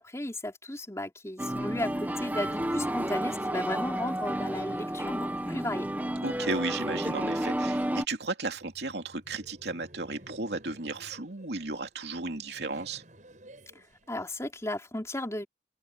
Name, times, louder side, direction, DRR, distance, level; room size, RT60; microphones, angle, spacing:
voice 1, 0.0-5.9 14.1-15.5, left 1 dB, 15° left, 3.8 m, -35 dB
sound 1, 1.4-8.1, right 1 dB, 10° right, 1.7 m, -31 dB
voice 2, 6.2-13.0, right 3 dB, 70° right, 2.8 m, -34 dB
Laughter, 8.5-14.7, right 1 dB, 45° right, 7.9 m, -55 dB
open air
head